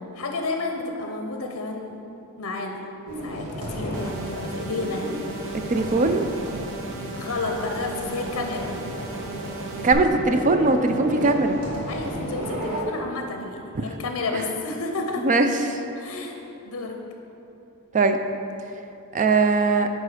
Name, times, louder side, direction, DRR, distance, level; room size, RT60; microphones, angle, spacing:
voice 1, 0.1-2.0 2.4-2.8 3.2-5.1 7.1-8.7 11.9-15.2 16.0-16.4 16.6-17.0, left 3 dB, 65° left, 3 dB, 0.6 m, -31 dB
sound 1, 3.1-12.8, right 1 dB, 80° right, 1.7 m, -34 dB
sound 2, 3.9-9.9, right 3 dB, 60° right, 0.7 m, -36 dB
voice 2, 5.7-6.3 9.8-11.6 14.3-14.4 15.2-15.8 17.9-18.2 19.1-19.9, right 3 dB, 35° right, 7 dB, 0.4 m, -20 dB
8.9 x 3.8 x 4.9 m, 2.8 s
head